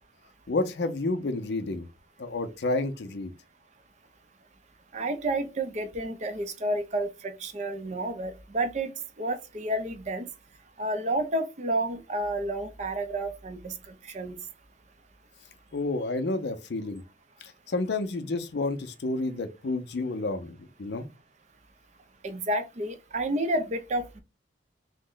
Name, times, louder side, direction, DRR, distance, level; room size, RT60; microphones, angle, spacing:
voice 1, 0.5-1.9 2.2-3.3 15.7-17.0 17.4-21.1, left 2 dB, 60° left, 0.5 m, -30 dB
voice 2, 4.9-8.9 9.2-10.3 10.8-13.7 14.1-14.3 22.2-24.2, right 1 dB, 35° right, 0.4 m, -30 dB
3.1 x 2.1 x 3.7 m
head